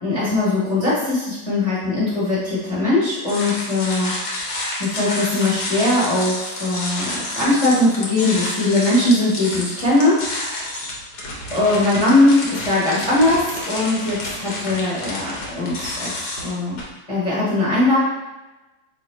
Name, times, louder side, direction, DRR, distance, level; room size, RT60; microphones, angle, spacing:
voice 1, 0.0-4.1 4.8-10.2 11.5-16.8 17.1-18.0, left 2 dB, 20° left, -10 dB, 1.0 m, -20 dB
sound 1, 3.3-16.8, left 1 dB, 55° left, 1.1 m, -29 dB
3.1 x 2.9 x 4.3 m, 1.1 s
omnidirectional pair, 2.3 m